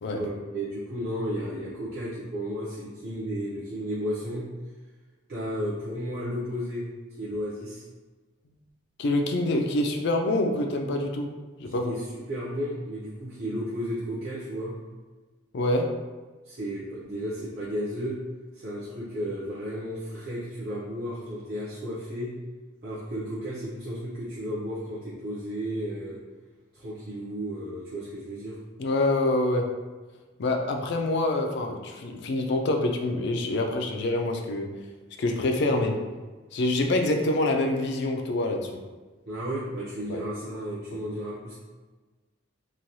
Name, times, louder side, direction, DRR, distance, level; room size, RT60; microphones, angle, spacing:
voice 1, 0.1-4.5 5.3-6.9 7.2-7.8 11.7-12.0 12.3-14.8 16.4-18.2 18.5-22.3 22.8-26.2 26.7-28.6 39.3-41.6, equal, 50° right, -9 dB, 0.5 m, -33 dB
voice 2, 9.0-11.3 11.6-11.9 15.5-16.0 28.8-29.8 30.4-34.7 35.2-36.0 36.5-38.8 40.1-40.2 40.9-41.0, left 2 dB, 55° left, 3 dB, 0.3 m, -26 dB
3.1 x 2.2 x 2.7 m, 1.3 s
head